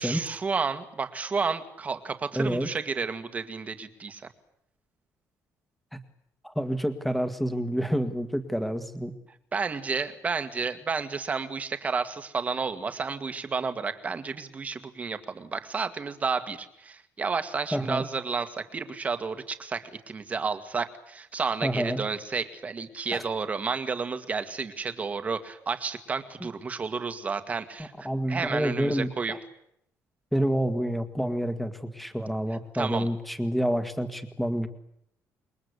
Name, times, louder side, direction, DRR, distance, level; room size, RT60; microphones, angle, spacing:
voice 1, 0.0-4.2 9.5-29.3 32.7-33.1, right 5 dB, 25° right, 9 dB, 1.8 m, -31 dB
voice 2, 2.3-2.7 5.9-6.0 6.4-9.2 17.7-18.1 21.6-22.1 23.1-23.2 26.4-26.5 27.8-29.4 30.3-34.7, equal, ahead, 8 dB, 1.8 m, -28 dB
27.0 x 22.5 x 8.3 m, 0.75 s
cardioid pair, 170°, 6 cm